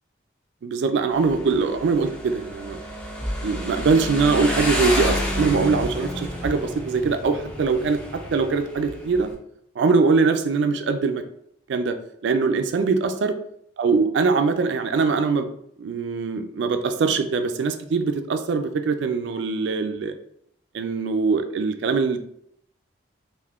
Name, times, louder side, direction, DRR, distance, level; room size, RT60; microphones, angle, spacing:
voice 1, 0.6-2.8 3.4-9.3 9.8-11.2 11.7-12.0 12.2-13.3 13.8-15.5 15.8-20.2 20.7-22.2, right 4 dB, 65° right, 8 dB, 0.3 m, -22 dB
Motorcycle, 1.1-9.3, equal, 5° left, 0.4 m, -30 dB
2.5 x 2.4 x 3.4 m, 0.71 s
head